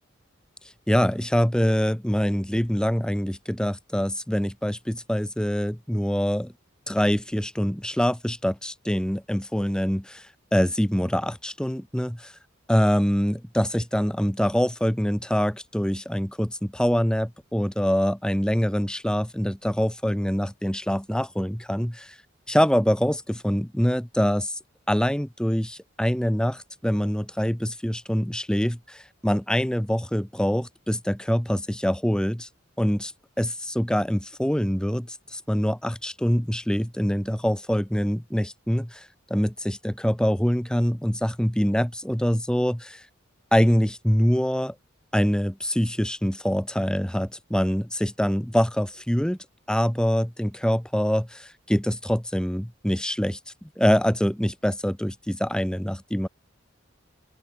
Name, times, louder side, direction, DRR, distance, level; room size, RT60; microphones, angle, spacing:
voice 1, 0.9-6.5 6.9-12.3 12.7-22.1 22.5-24.6 24.9-32.5 32.8-33.1 33.4-43.0 43.5-44.7 45.1-49.4 49.7-53.4 53.8-56.3, equal, 5° left, 1.0 m, -24 dB
open air
head